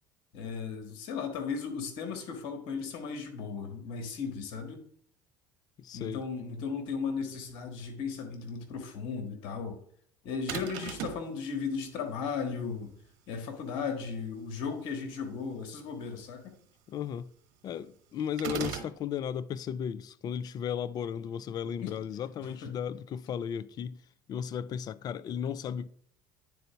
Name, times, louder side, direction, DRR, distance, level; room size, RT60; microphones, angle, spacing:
voice 1, 0.3-4.8 5.9-9.8 10.2-12.9 13.3-16.5 21.8-21.9 22.4-22.7, left 5 dB, 65° left, 1.7 m, -36 dB
voice 2, 5.8-6.2 16.9-17.3 17.6-24.0 24.3-25.9, left 8 dB, 45° left, 0.4 m, -35 dB
sound 1, 10.5-11.3 18.4-19.0, right 9 dB, 70° right, 1.1 m, -36 dB
9.4 x 3.9 x 4.6 m
hypercardioid pair, 80°, 9 cm